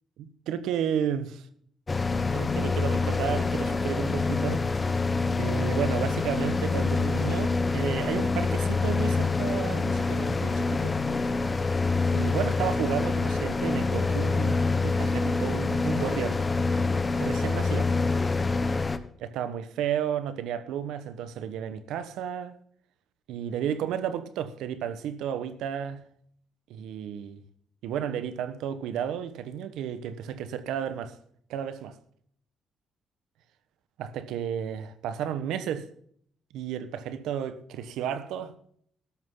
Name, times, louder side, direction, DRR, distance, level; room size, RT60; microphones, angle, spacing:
voice 1, 0.2-1.5 2.3-5.0 5.4-11.0 12.1-16.4 17.2-17.9 19.2-22.6 23.3-26.0 26.7-27.4 27.8-31.1 31.5-32.0 34.0-35.9 36.5-38.5, right 9 dB, 85° right, 1.2 m, -32 dB
sound 1, 1.9-19.0, left 3 dB, 25° left, 1.1 m, -26 dB
13.5 x 12.0 x 3.9 m
cardioid pair, 90°, 0 cm